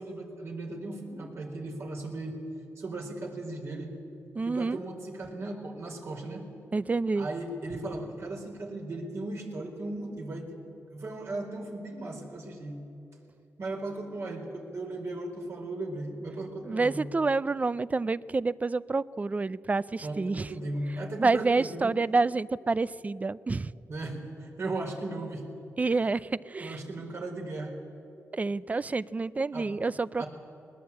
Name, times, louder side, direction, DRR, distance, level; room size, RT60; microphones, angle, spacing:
voice 1, 0.0-2.4 2.8-3.9 4.4-6.5 7.1-10.6 10.9-12.8 13.6-17.0 20.0-21.9 23.9-25.5 26.5-27.8 29.5-29.7 30.2-30.3, right 2 dB, 60° right, 2 dB, 4.6 m, -37 dB
voice 2, 4.3-4.8 6.7-7.3 16.6-20.5 21.2-23.7 25.8-26.8 28.3-30.2, right 3 dB, 30° right, 19 dB, 0.5 m, -28 dB
20.5 x 20.0 x 8.7 m, 2.8 s
cardioid pair, 80°, 5 cm